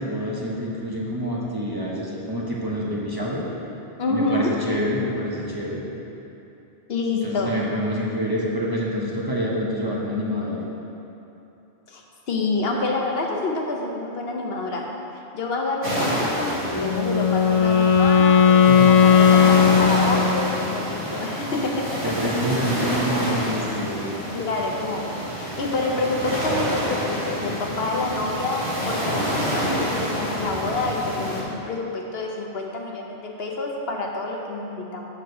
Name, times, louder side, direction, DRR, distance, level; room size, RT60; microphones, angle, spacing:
voice 1, 0.0-3.5 4.1-5.8 7.2-10.6 18.7-18.9 22.0-24.2, equal, 25° right, -5 dB, 0.8 m, -27 dB
voice 2, 4.0-4.6 6.9-7.6 11.9-14.9 15.3-22.1 24.3-35.0, left 2 dB, 65° left, 0 dB, 1.0 m, -28 dB
sound 1, 15.8-31.4, equal, 75° right, 1.9 m, -28 dB
Wind instrument woodwind instrument, 16.7-20.6, left 7 dB, 85° left, 1.3 m, -16 dB
6.3 x 4.9 x 6.7 m, 2.9 s
omnidirectional pair, 1.1 m